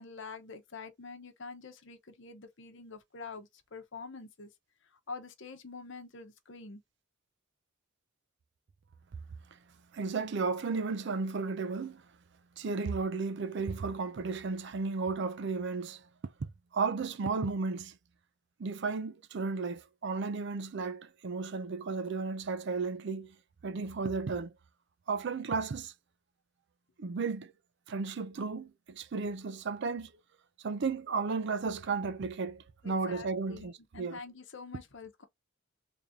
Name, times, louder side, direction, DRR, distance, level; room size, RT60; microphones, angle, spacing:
voice 1, 0.0-4.5 4.8-6.8 32.8-35.2, left 4 dB, 60° left, 0.9 m, -46 dB
voice 2, 9.9-12.0 12.6-16.0 16.7-18.0 18.6-23.4 23.6-24.5 25.1-25.9 27.0-27.5 27.9-30.1 30.6-34.2, right 4 dB, 55° right, 0.4 m, -34 dB
3.3 x 2.7 x 3.6 m
head